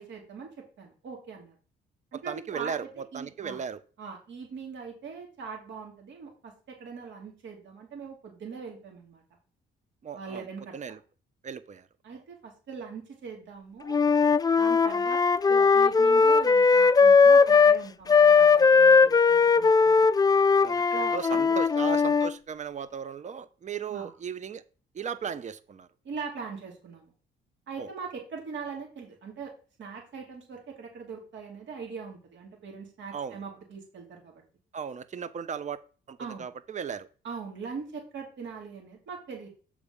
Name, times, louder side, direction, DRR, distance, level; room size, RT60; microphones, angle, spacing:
voice 1, 0.0-1.5 2.1-3.6 4.0-9.2 10.1-10.7 12.0-13.9 14.6-20.1 20.9-21.6 23.9-24.1 26.0-27.1 27.7-29.5 29.8-34.4 36.2-36.5 37.2-39.5, right 5 dB, 70° right, 0 dB, 3.0 m, -41 dB
voice 2, 2.3-3.8 10.0-10.5 10.7-11.0 11.4-11.9 20.6-20.8 21.1-24.6 24.9-25.9 27.8-27.9 33.1-33.4 34.7-35.8 36.1-37.1, right 7 dB, 35° right, 14 dB, 0.7 m, -36 dB
Wind instrument woodwind instrument, 13.9-17.8 18.1-22.3, left 5 dB, 20° left, 0.3 m, -19 dB
7.1 x 4.9 x 5.3 m, 0.37 s
cardioid pair, 90°, 20 cm